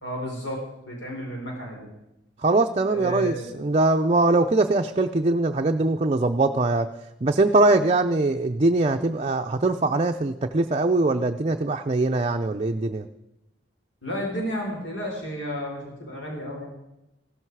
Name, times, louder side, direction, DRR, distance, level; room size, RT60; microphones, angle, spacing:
voice 1, 0.0-1.9 2.9-3.5 14.0-16.7, equal, 75° left, -1 dB, 4.5 m, -32 dB
voice 2, 2.4-6.9 7.2-13.1, right 2 dB, 35° right, 4 dB, 0.5 m, -22 dB
16.0 x 13.5 x 4.8 m, 0.90 s
head